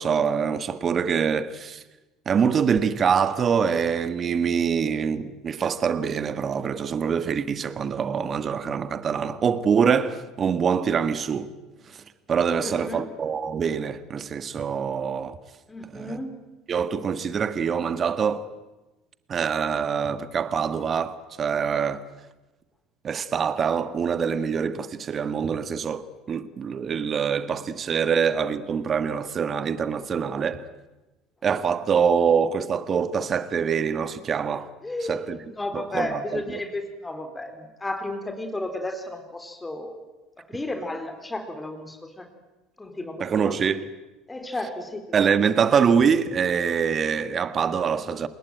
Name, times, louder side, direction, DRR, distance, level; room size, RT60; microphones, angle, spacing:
voice 1, 0.0-1.8 2.2-11.5 11.9-12.0 12.3-15.4 15.9-16.2 16.7-18.5 19.3-22.0 23.0-30.6 31.4-34.7 35.0-35.4 35.7-36.4 43.2-43.9 45.1-48.3, right 6 dB, 40° right, 1.6 m, -24 dB
voice 2, 12.6-13.1 15.7-16.4 34.8-35.3 35.5-40.0 40.5-42.3 42.8-43.5 44.3-45.2, left 2 dB, 15° left, 4.1 m, -33 dB
28.5 x 20.5 x 9.2 m
hypercardioid pair, 65°, 0 cm